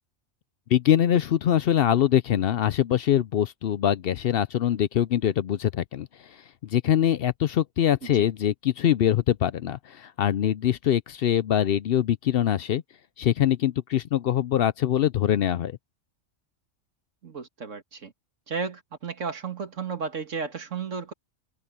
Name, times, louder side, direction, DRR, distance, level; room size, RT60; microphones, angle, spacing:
voice 1, 0.7-6.1 6.7-12.8 13.2-15.8, left 10 dB, 60° left, 0.7 m, -23 dB
voice 2, 17.2-18.1 18.5-21.1, right 5 dB, 85° right, 2.3 m, -33 dB
open air
omnidirectional pair, 1.3 m